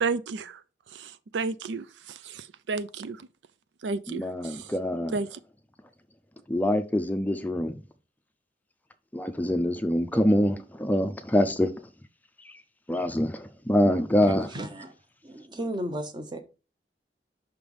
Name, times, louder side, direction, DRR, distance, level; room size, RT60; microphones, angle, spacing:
voice 1, 0.0-0.6 0.9-3.2 3.8-4.7 5.1-5.4, right 4 dB, 90° right, 0.4 m, -32 dB
voice 2, 4.1-5.1 6.5-7.8 9.1-11.7 12.9-14.5, left 1 dB, 10° left, 0.4 m, -25 dB
voice 3, 14.2-14.9 15.2-16.4, right 1 dB, 25° right, 0.8 m, -34 dB
5.9 x 3.4 x 5.3 m
head